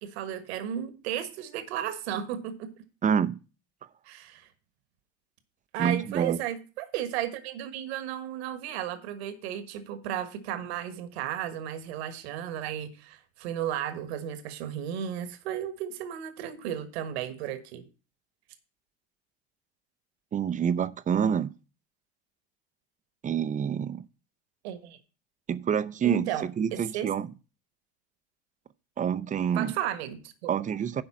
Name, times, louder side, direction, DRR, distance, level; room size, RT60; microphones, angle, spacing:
voice 1, 0.0-2.7 4.0-4.5 5.7-17.9 24.6-25.0 26.0-27.1 29.5-30.5, right 10 dB, 75° right, 1.4 m, -34 dB
voice 2, 3.0-3.4 5.8-6.4 20.3-21.5 23.2-24.0 25.5-27.3 29.0-29.7 30.5-31.0, right 8 dB, 25° right, 0.6 m, -27 dB
10.5 x 3.8 x 7.3 m
hypercardioid pair, 90°, 32 cm